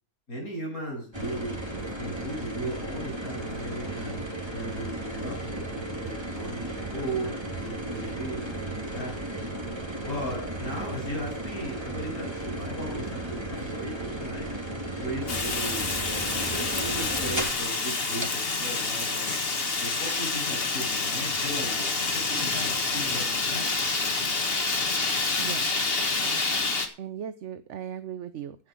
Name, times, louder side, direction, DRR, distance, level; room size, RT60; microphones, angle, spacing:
voice 1, 0.3-4.2 4.5-9.1 10.1-14.5 15.0-15.9 16.3-19.3 19.8-23.7, right 1 dB, 75° left, 1 dB, 8.0 m, -37 dB
sound 1, 1.1-17.7 18.2-18.3, right 1 dB, 15° right, 2.6 m, -35 dB
Fire, 15.3-26.9, left 3 dB, 40° left, 1.9 m, -28 dB
voice 2, 25.4-25.7 26.2-26.6 27.0-28.6, right 9 dB, 60° right, 12 dB, 1.0 m, -38 dB
16.0 x 5.7 x 6.3 m, 0.38 s
omnidirectional pair, 1.5 m